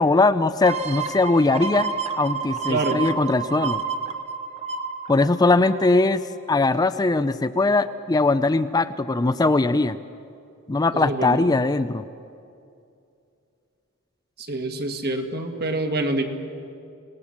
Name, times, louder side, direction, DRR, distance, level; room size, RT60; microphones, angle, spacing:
voice 1, 0.0-3.8 5.1-10.0 10.7-12.0, left 3 dB, 20° left, 11 dB, 0.5 m, -20 dB
sound 1, 0.6-6.1 6.6-6.7, right 6 dB, 30° right, 1.0 m, -30 dB
voice 2, 2.7-3.0 10.9-11.5 14.4-16.2, right 2 dB, 50° right, 4 dB, 2.0 m, -26 dB
26.0 x 18.5 x 7.3 m, 2.5 s
head